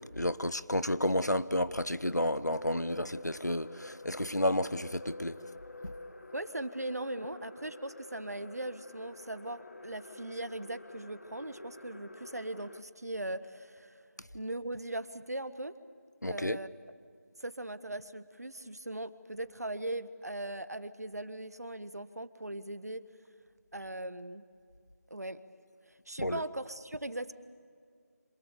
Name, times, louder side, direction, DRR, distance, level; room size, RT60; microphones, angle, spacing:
voice 1, 0.2-5.3 5.8-5.9 16.2-16.6 26.2-26.4, left 1 dB, 90° left, 1.1 m, -31 dB
sound 1, 2.5-12.8, left 2 dB, 55° left, 1.4 m, -49 dB
voice 2, 6.3-14.0 14.3-15.7 16.3-16.7 17.4-23.0 23.7-24.4 25.1-25.4 26.1-27.3, right 1 dB, 70° right, 1.5 m, -39 dB
27.5 x 26.5 x 7.1 m
figure-of-eight pair, 165°, 9 cm